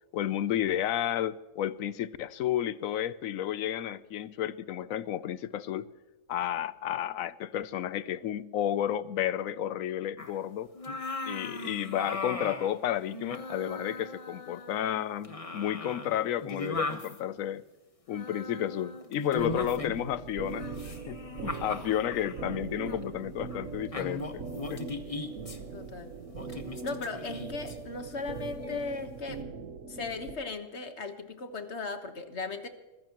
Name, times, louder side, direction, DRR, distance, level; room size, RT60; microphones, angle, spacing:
voice 1, 0.1-5.9 6.3-10.7 11.3-17.6 18.1-24.4 24.7-24.8, left 11 dB, 85° left, 1.1 m, -32 dB
sound 1, 10.2-10.4 10.8-12.7 13.1-15.0 15.2-17.2 18.1-20.1 20.5-22.4 22.9-23.0 23.5-23.6 23.9-25.6 26.3-27.8 28.6-29.0, left 2 dB, 25° left, 1.3 m, -38 dB
sound 2, 19.4-30.3, right 5 dB, 80° right, 1.6 m, -41 dB
voice 2, 25.7-26.1 26.8-29.4 29.9-32.7, left 3 dB, 55° left, 1.6 m, -37 dB
24.5 x 15.0 x 3.0 m
omnidirectional pair, 1.4 m